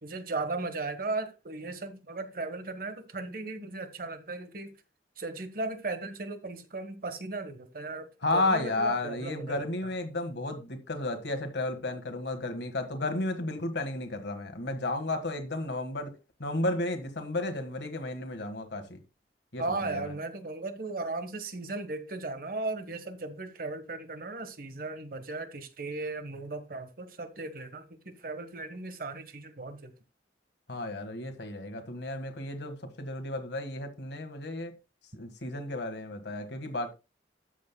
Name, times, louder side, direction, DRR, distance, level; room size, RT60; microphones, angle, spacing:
voice 1, 0.0-4.7 5.2-9.9 19.6-29.9, right 3 dB, 50° right, 1.3 m, -36 dB
voice 2, 8.2-16.1 16.4-19.0 19.5-20.1 30.7-34.7 35.2-36.9, left 2 dB, 65° left, 1.6 m, -33 dB
13.0 x 7.5 x 2.2 m
head